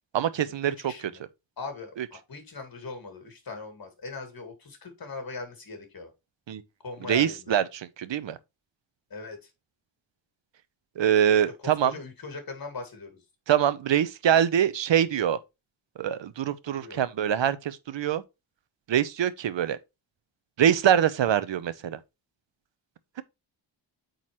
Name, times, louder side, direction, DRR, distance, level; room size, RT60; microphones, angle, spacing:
voice 1, 0.1-0.9 2.0-2.1 6.5-6.6 7.0-8.4 11.0-12.0 13.5-15.4 16.0-18.2 18.9-19.8 20.6-22.0, right 9 dB, 65° right, 0.8 m, -24 dB
voice 2, 0.7-1.2 1.6-6.1 6.8-7.6 9.1-9.5 11.2-11.4 11.6-13.2 16.7-17.0, left 4 dB, 45° left, 2.1 m, -40 dB
8.5 x 4.0 x 3.1 m
wide cardioid pair, 150°, 48 cm